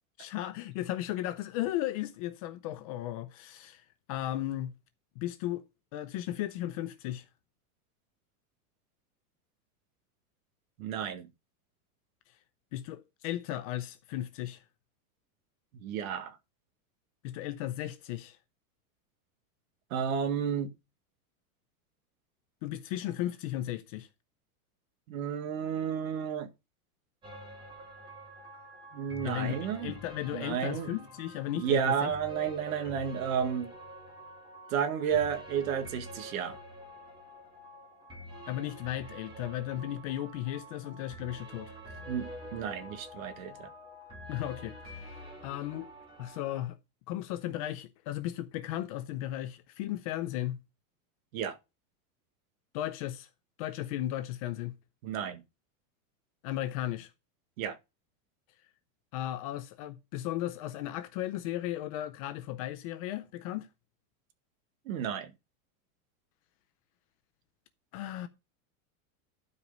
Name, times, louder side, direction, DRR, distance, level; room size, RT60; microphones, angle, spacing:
voice 1, 0.2-4.7 5.2-5.7 5.9-7.3 12.7-14.6 17.2-18.4 22.6-24.1 29.2-32.1 38.5-41.8 44.3-45.9 46.2-46.8 47.1-50.6 52.7-53.3 53.6-54.8 56.4-57.1 59.1-63.7 67.9-68.3, left 13 dB, 25° left, 0.4 m, -35 dB
voice 2, 10.8-11.3 15.8-16.4 19.9-20.7 25.1-26.5 28.9-29.9 30.3-30.9 31.5-33.7 34.7-36.6 42.1-43.7 51.3-51.6 55.0-55.4 57.6-57.8 64.9-65.3, right 8 dB, 65° right, 1.8 m, -32 dB
sound 1, 27.2-46.7, equal, 10° right, 2.4 m, -47 dB
12.0 x 5.0 x 5.2 m
supercardioid pair, 165°, 45 cm